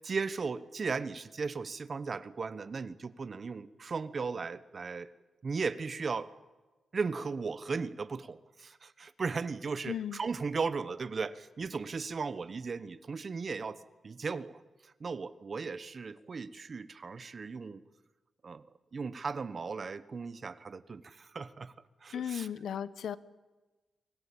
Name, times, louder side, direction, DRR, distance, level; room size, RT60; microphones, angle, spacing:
voice 1, 0.0-5.1 5.4-6.3 6.9-17.8 18.4-18.6 18.9-21.7 22.0-22.5, right 4 dB, 45° right, 15 dB, 1.0 m, -36 dB
voice 2, 9.9-10.2 22.1-23.2, left 9 dB, 85° left, 16 dB, 0.9 m, -36 dB
24.5 x 18.0 x 8.7 m, 1.2 s
cardioid pair, 110°, 0 cm